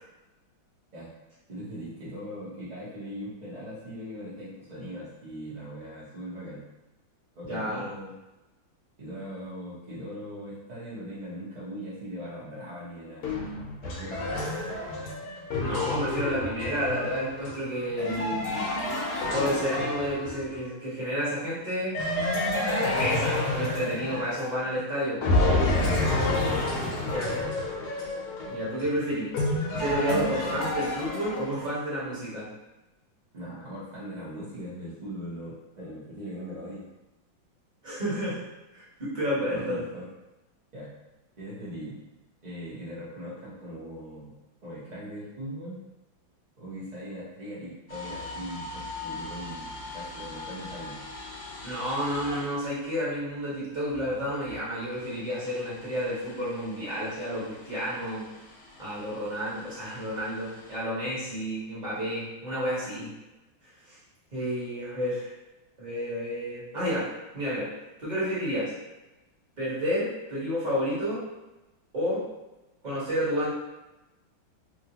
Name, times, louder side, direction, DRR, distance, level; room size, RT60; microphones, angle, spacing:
voice 1, 1.5-6.6 7.3-8.1 9.0-13.3 13.8-14.5 26.7-27.4 33.3-36.8 39.5-40.1 40.7-40.9 41.4-42.0 42.4-44.3 44.6-45.8 46.6-51.0, equal, 70° right, -9 dB, 0.4 m, -40 dB
voice 2, 7.5-7.8 15.6-18.5 19.3-22.0 23.0-25.3 27.1-27.3 28.5-29.3 29.8-32.5 37.8-38.4 38.7-39.8 51.6-58.3 58.8-63.1 63.9-64.0 64.3-65.3 65.8-67.1 67.3-67.7 68.0-68.7 69.6-71.2 71.9-72.2 72.8-73.5, equal, 30° right, -9 dB, 1.0 m, -30 dB
sound 1, 13.2-20.6 21.9-24.8 25.2-31.7, left 2 dB, 65° left, 1.0 m, -29 dB
sound 2, 47.9-53.1 53.5-60.8, left 2 dB, 85° left, 0.6 m, -43 dB
3.1 x 2.7 x 2.8 m, 1.0 s
omnidirectional pair, 2.2 m